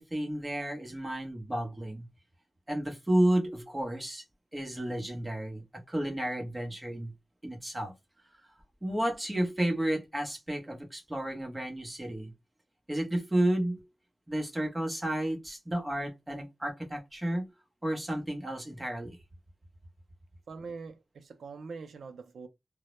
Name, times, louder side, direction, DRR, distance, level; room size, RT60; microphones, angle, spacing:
voice 1, 0.0-2.1 2.7-4.2 4.5-7.1 7.4-7.9 8.8-12.3 12.9-13.8 14.3-17.5 17.8-19.2, right 1 dB, 15° right, 0.8 m, -31 dB
voice 2, 20.5-22.5, right 4 dB, 85° right, 0.4 m, -43 dB
2.1 x 2.0 x 2.9 m
wide cardioid pair, 105°, 0 cm